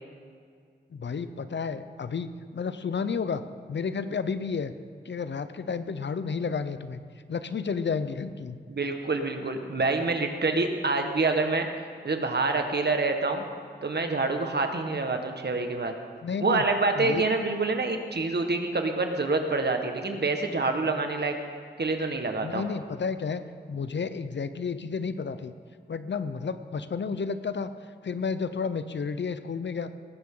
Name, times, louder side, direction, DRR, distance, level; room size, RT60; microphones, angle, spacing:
voice 1, 0.9-3.4 3.7-4.7 5.0-7.0 7.3-8.6 16.2-16.6 17.0-17.3 17.5-17.6 22.4-23.4 23.7-25.5 25.9-27.7 28.0-29.9, left 5 dB, 75° left, 12 dB, 0.7 m, -31 dB
voice 2, 8.7-11.7 12.0-13.4 13.8-15.9 16.4-21.4 21.8-22.6, right 3 dB, 65° right, 5 dB, 1.6 m, -27 dB
19.0 x 15.0 x 3.9 m, 2.1 s
cardioid pair, 50°, 19 cm